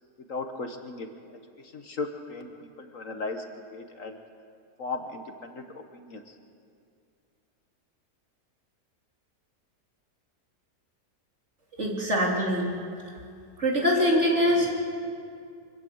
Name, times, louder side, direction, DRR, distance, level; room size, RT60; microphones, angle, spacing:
voice 1, 0.3-1.1 1.6-3.4 3.7-4.2 4.8-6.3, left 3 dB, 55° left, 5 dB, 1.7 m, -36 dB
voice 2, 11.8-12.7 13.0-13.1 13.6-14.7, equal, 45° right, -2 dB, 3.9 m, -23 dB
25.0 x 16.5 x 8.0 m, 2.3 s
omnidirectional pair, 1.7 m